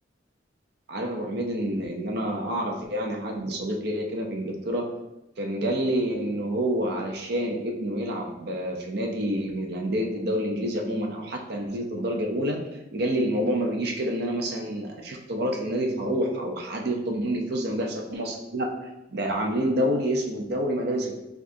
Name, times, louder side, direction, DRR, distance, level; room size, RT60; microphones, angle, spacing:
voice 1, 0.9-4.9 5.4-12.6 12.9-18.7 19.1-21.2, equal, 60° right, 2 dB, 0.6 m, -28 dB
4.7 x 2.4 x 2.6 m, 0.97 s
head